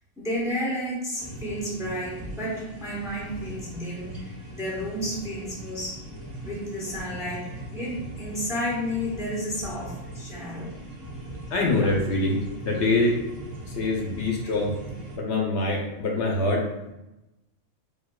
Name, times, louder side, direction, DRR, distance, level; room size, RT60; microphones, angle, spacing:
voice 1, 0.2-6.0 6.4-10.8, equal, 5° right, -4 dB, 0.8 m, -32 dB
sound 1, 1.2-15.2, right 1 dB, 35° right, 1.1 m, -40 dB
voice 2, 11.5-12.4 12.6-13.2 13.8-14.7 15.2-16.9, left 2 dB, 70° left, -1 dB, 0.9 m, -24 dB
4.3 x 2.3 x 2.2 m, 0.94 s
omnidirectional pair, 1.3 m